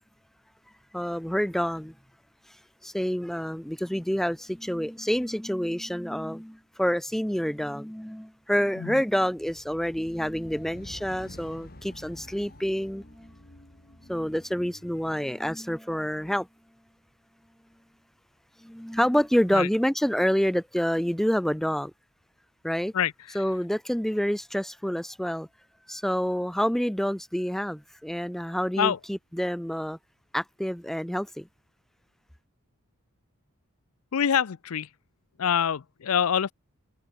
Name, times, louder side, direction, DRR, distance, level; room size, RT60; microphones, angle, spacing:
voice 1, 0.9-1.9 2.8-13.3 14.1-16.5 18.6-21.9 22.6-22.9 23.3-25.5 25.9-30.0 30.3-31.5, equal, ahead, 0.4 m, -28 dB
sound 1, 9.2-15.7, left 1 dB, 45° left, 2.3 m, -49 dB
voice 2, 22.9-23.4 28.8-29.0 34.1-34.9 35.4-36.5, left 8 dB, 85° left, 0.5 m, -26 dB
head